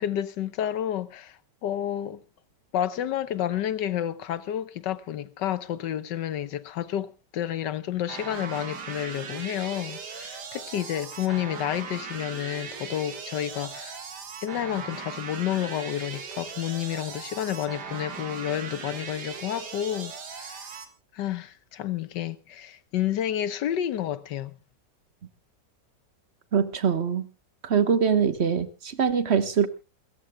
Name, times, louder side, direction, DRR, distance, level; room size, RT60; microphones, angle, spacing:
voice 1, 0.0-2.2 2.7-14.0 14.4-20.7 21.1-24.6, left 11 dB, 80° left, 1.6 m, -30 dB
sound 1, 8.1-20.9, right 6 dB, 70° right, 2.3 m, -39 dB
voice 2, 26.5-27.3 27.6-29.7, right 7 dB, 40° right, 1.3 m, -23 dB
28.0 x 15.0 x 2.3 m
omnidirectional pair, 1.9 m